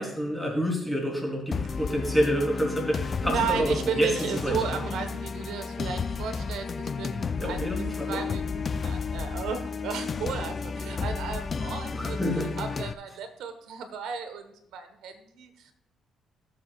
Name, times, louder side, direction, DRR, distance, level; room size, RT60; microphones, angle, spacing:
voice 1, 0.0-4.6 7.4-8.2 11.9-12.5, equal, 5° left, -1 dB, 3.7 m, -28 dB
sound 1, 1.5-12.9, left 5 dB, 40° left, 0.4 m, -32 dB
voice 2, 3.2-6.7 7.0-7.7 8.1-12.2 12.6-15.7, right 6 dB, 85° right, 7 dB, 1.4 m, -34 dB
17.5 x 7.5 x 2.5 m, 0.74 s
cardioid pair, 90°, 0 cm